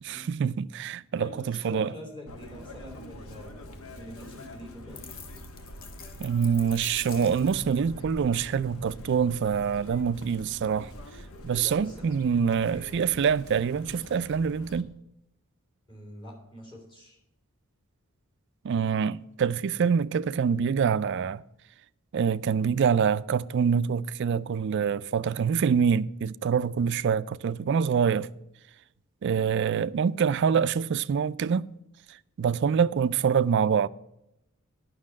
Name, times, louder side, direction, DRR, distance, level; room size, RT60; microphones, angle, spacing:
voice 1, 0.0-1.9 6.2-10.9 11.4-14.9 18.6-21.4 22.1-28.3 29.2-31.7 32.4-33.9, right 6 dB, 55° right, 0.3 m, -25 dB
voice 2, 1.2-5.0 11.6-12.2 15.9-17.2 29.2-29.4, equal, 20° left, 3.2 m, -45 dB
Chirp tweet, 2.3-14.8, left 1 dB, 75° left, 1.1 m, -45 dB
sound 1, 5.0-7.7, left 7 dB, 40° left, 0.8 m, -46 dB
9.7 x 6.0 x 7.4 m
head